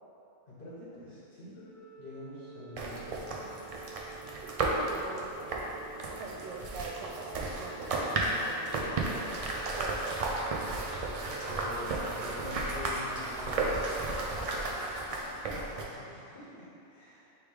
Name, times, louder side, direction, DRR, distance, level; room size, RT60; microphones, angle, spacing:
voice 1, 0.5-1.6 2.0-3.5 11.2-13.8 15.5-17.3, left 1 dB, 50° left, -8 dB, 1.0 m, -46 dB
Organ, 1.6-12.6, right 5 dB, 90° left, 0.9 m, -50 dB
sound 1, 2.8-15.8, right 2 dB, 65° right, 0.3 m, -34 dB
voice 2, 4.4-5.7 6.1-9.3 9.7-10.0 14.4-14.8, right 4 dB, 85° right, 1 dB, 0.9 m, -44 dB
3.4 x 3.1 x 4.8 m, 2.8 s
omnidirectional pair, 1.2 m